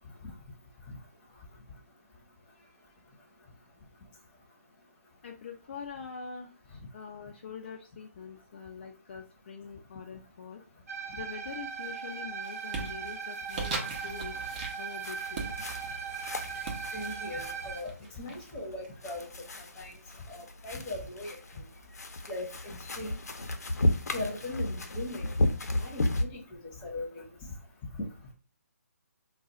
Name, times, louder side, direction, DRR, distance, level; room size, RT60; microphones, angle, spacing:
voice 1, 5.2-10.6 11.1-14.4 14.8-15.5, left 6 dB, 40° left, 0.4 m, -44 dB
sound 1, 10.9-17.8, right 6 dB, 65° right, 0.8 m, -39 dB
sound 2, 11.4-11.9 12.2-18.9, right 4 dB, 30° right, 0.8 m, -41 dB
sound 3, 15.0-26.2, left 1 dB, 75° left, 0.7 m, -34 dB
voice 2, 16.9-19.3 19.8-19.9 20.3-21.6 22.3-23.2 24.1-25.3 25.8-27.3, left 2 dB, 15° left, 0.9 m, -39 dB
2.4 x 2.3 x 4.0 m
hypercardioid pair, 160°, 9 cm